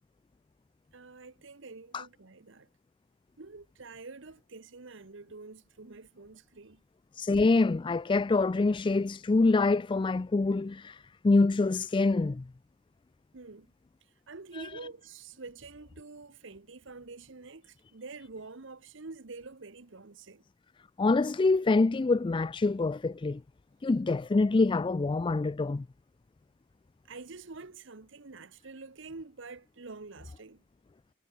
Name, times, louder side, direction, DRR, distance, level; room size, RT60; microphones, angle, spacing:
voice 1, 0.9-2.7 3.4-6.8 13.3-13.7 14.3-20.4 27.0-30.6, right 3 dB, 65° right, 1.1 m, -47 dB
voice 2, 7.2-12.4 21.0-23.4 23.8-25.9, left 3 dB, 25° left, 0.3 m, -25 dB
head